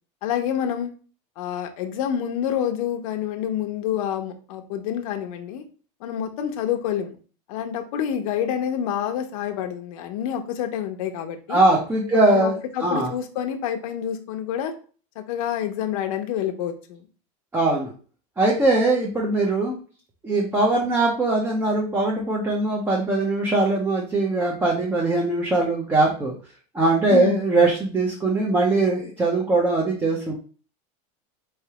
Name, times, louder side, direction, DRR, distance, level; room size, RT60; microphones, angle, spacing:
voice 1, 0.2-0.9 1.4-5.6 6.0-7.2 7.5-11.6 12.1-14.7 15.2-17.1 27.1-27.4, left 9 dB, 75° left, 5 dB, 0.8 m, -28 dB
voice 2, 11.5-12.6 12.8-13.1 17.5-17.9 18.4-19.8 20.2-26.3 26.7-30.3, right 2 dB, 10° right, -2 dB, 0.7 m, -21 dB
4.6 x 3.2 x 2.8 m, 0.38 s
supercardioid pair, 155°, 18 cm